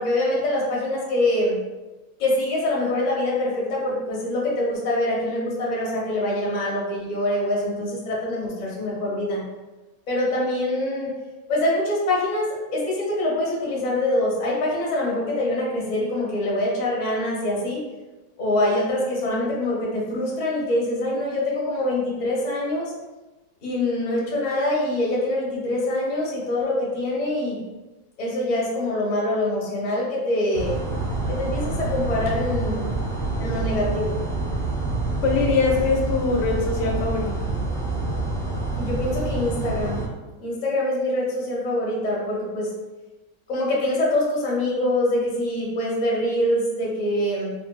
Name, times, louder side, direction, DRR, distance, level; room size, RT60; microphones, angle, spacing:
voice 1, 0.0-1.6 2.2-9.4 10.1-11.1 11.5-17.8 18.4-22.9 23.6-27.6 28.2-30.8 31.3-32.9 33.4-34.2 38.8-40.0 40.4-42.8 43.5-47.5, left 1 dB, 55° left, -4 dB, 0.5 m, -24 dB
sound 1, 30.5-40.1, right 3 dB, 45° right, 0.4 m, -27 dB
voice 2, 35.2-37.3, left 4 dB, 75° left, 0 dB, 1.2 m, -22 dB
3.7 x 2.5 x 2.2 m, 1.1 s
omnidirectional pair, 1.9 m